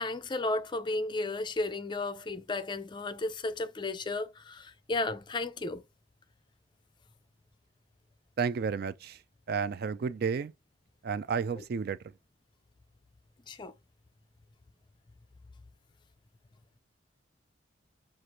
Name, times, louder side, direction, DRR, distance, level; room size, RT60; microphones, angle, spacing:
voice 1, 0.0-5.8 11.6-11.7 13.5-13.7, left 2 dB, 25° left, 0.4 m, -34 dB
voice 2, 8.4-9.2 9.5-10.5 11.0-12.0, right 6 dB, 50° right, 0.3 m, -31 dB
6.3 x 2.5 x 2.9 m
head